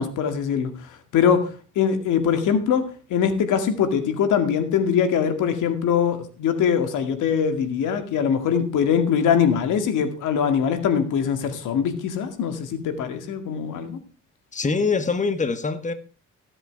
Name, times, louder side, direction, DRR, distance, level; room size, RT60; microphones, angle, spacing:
voice 1, 0.0-1.5 1.8-14.0, left 7 dB, 85° left, 2.2 m, -22 dB
voice 2, 14.5-15.9, left 4 dB, 25° left, 1.4 m, -24 dB
15.5 x 7.8 x 4.7 m
cardioid pair, 90°, 30 cm